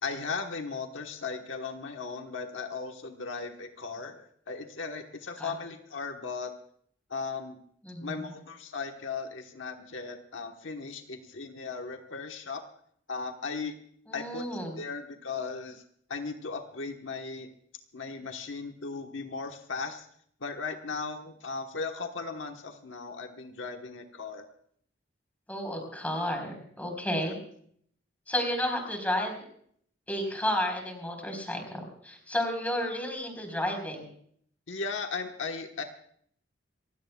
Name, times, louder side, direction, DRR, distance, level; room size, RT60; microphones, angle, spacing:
voice 1, 0.0-6.5 7.1-7.6 8.0-12.6 13.1-13.8 14.1-14.5 14.8-15.8 16.1-17.5 17.9-20.1 20.4-24.4 27.2-27.3 34.7-35.8, left 4 dB, 80° left, 4 dB, 1.3 m, -37 dB
voice 2, 7.8-8.3 14.1-14.8 25.5-27.4 28.3-29.4 30.1-34.0, left 1 dB, 10° left, 3 dB, 4.2 m, -32 dB
27.5 x 16.5 x 2.3 m, 0.62 s
head